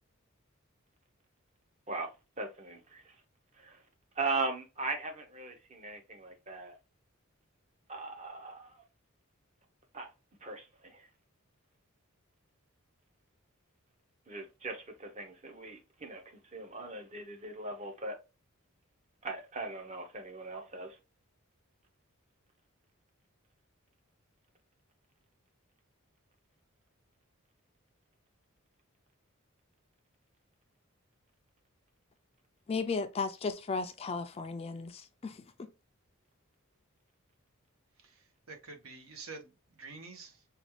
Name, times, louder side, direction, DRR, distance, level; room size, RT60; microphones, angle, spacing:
voice 1, 2.4-3.1 3.6-3.8 4.2-6.8 7.9-8.8 9.9-10.1 10.4-11.1 14.3-18.2 19.2-21.0, right 3 dB, 30° right, 0.8 m, -39 dB
voice 2, 32.7-35.4, left 4 dB, 25° left, 0.3 m, -35 dB
voice 3, 38.0-40.5, right 3 dB, 75° right, 1.0 m, -48 dB
5.0 x 2.4 x 3.0 m
head